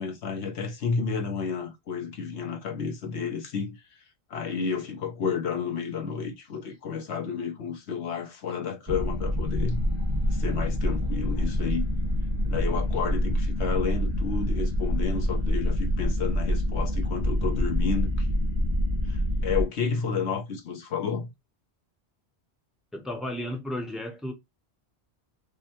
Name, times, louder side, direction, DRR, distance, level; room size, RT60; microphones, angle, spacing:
voice 1, 0.0-3.8 4.3-9.8 10.3-11.8 12.4-18.3 19.0-21.3, left 6 dB, 90° left, 1.2 m, -31 dB
sound 1, 8.9-19.6, equal, 25° right, 1.1 m, -26 dB
voice 2, 22.9-24.3, left 1 dB, ahead, 0.7 m, -33 dB
5.3 x 2.2 x 2.9 m
omnidirectional pair, 1.1 m